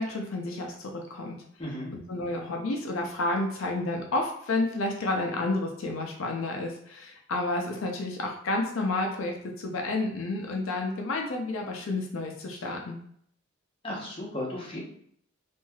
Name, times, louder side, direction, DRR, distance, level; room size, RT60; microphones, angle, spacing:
voice 1, 0.0-1.4 1.9-13.0, left 2 dB, 80° left, 1 dB, 0.5 m, -30 dB
voice 2, 1.6-1.9 13.8-14.8, left 1 dB, 25° left, -4 dB, 0.8 m, -35 dB
3.1 x 2.5 x 2.3 m, 0.66 s
head